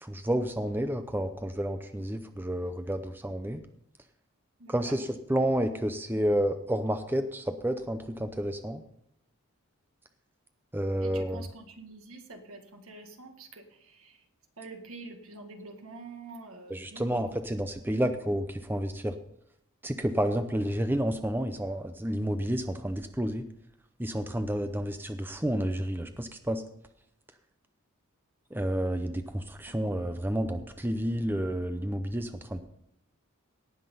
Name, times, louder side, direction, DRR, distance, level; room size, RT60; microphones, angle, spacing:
voice 1, 0.0-3.6 4.7-8.8 10.7-11.4 16.7-19.1 19.8-23.4 24.0-26.6 28.5-32.6, equal, 10° right, 8 dB, 0.6 m, -30 dB
voice 2, 4.6-5.0 11.0-14.3 14.6-17.2 29.7-29.8, right 3 dB, 75° right, 4 dB, 1.8 m, -46 dB
18.0 x 6.0 x 5.5 m, 0.74 s
head